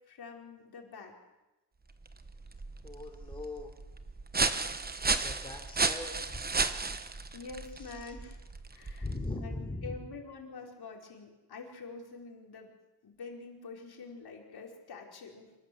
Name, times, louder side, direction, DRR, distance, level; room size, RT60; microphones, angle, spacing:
voice 1, 0.1-1.1 4.8-5.0 7.3-8.4 8.7-9.1 9.4-12.7 13.0-15.5, left 4 dB, 65° left, 1 dB, 4.6 m, -46 dB
sound 1, 1.9-9.3, right 4 dB, 20° right, 1.1 m, -34 dB
voice 2, 2.8-3.7 5.2-6.4 8.0-8.1 9.0-10.1, left 2 dB, 10° left, 2 dB, 3.4 m, -40 dB
26.5 x 19.0 x 7.9 m, 1.0 s
wide cardioid pair, 145°, 41 cm